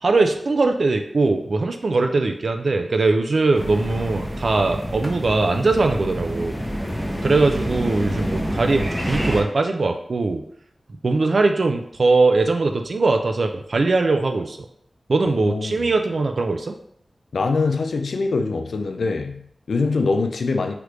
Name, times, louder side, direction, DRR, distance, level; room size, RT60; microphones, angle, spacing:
voice 1, 0.0-6.6 7.2-10.4 11.0-14.6 15.1-16.7, right 3 dB, 70° right, 5 dB, 0.3 m, -21 dB
sound 1, 3.5-9.4, equal, 5° right, 0.7 m, -27 dB
voice 2, 15.3-15.9 17.3-20.8, left 3 dB, 90° left, 6 dB, 0.3 m, -24 dB
3.3 x 2.5 x 3.1 m, 0.66 s
cardioid pair, 50°, 0 cm